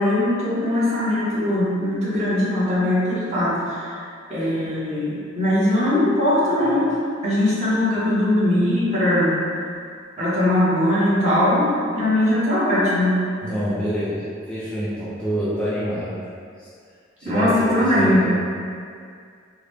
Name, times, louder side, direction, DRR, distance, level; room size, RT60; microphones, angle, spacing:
voice 1, 0.0-4.0 4.3-6.9 7.2-9.4 10.2-13.2 17.2-18.2, left 1 dB, 35° right, -10 dB, 1.0 m, -20 dB
voice 2, 13.4-16.2 16.6-16.7 17.2-18.4, equal, 5° left, -11 dB, 0.4 m, -26 dB
3.8 x 2.1 x 3.1 m, 2.2 s
head